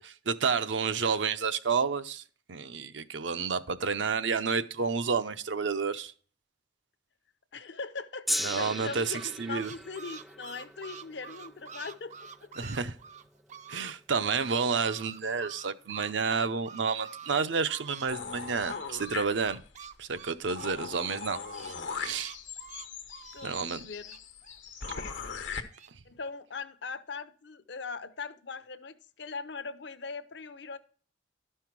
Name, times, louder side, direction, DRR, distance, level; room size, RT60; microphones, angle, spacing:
voice 1, 0.3-2.2 2.5-6.1 8.4-9.7 12.6-13.0 13.7-19.6 20.0-21.4 22.0-22.3 23.4-23.8, right 5 dB, 80° right, 0.7 m, -30 dB
voice 2, 7.5-12.5 23.3-23.5 23.8-24.2 25.6-25.7 26.0-30.8, left 4 dB, 65° left, 0.7 m, -40 dB
Gong, 8.3-14.6 15.4-15.5, equal, ahead, 0.3 m, -39 dB
sound 1, 8.8-13.9 14.2-18.1 18.4-24.9 25.2-25.9, right 6 dB, 40° right, 0.6 m, -47 dB
sound 2, 18.1-19.8 20.2-20.3 20.5-25.6, left 5 dB, 85° left, 1.1 m, -40 dB
12.0 x 5.6 x 4.6 m
head